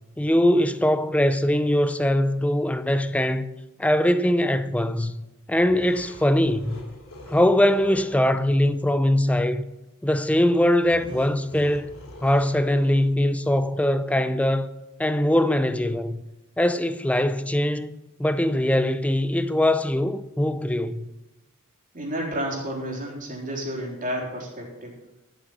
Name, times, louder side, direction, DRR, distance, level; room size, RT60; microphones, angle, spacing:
voice 1, 0.2-3.5 3.8-5.1 5.5-6.8 7.3-9.6 10.0-11.9 12.2-14.7 15.0-16.2 16.6-21.1, left 1 dB, 5° left, 0.5 m, -22 dB
sound 1, 5.6-8.2 10.8-13.1, left 1 dB, 75° left, 3.4 m, -43 dB
voice 2, 21.9-24.9, equal, 40° right, 3.7 m, -31 dB
12.0 x 8.2 x 6.2 m
head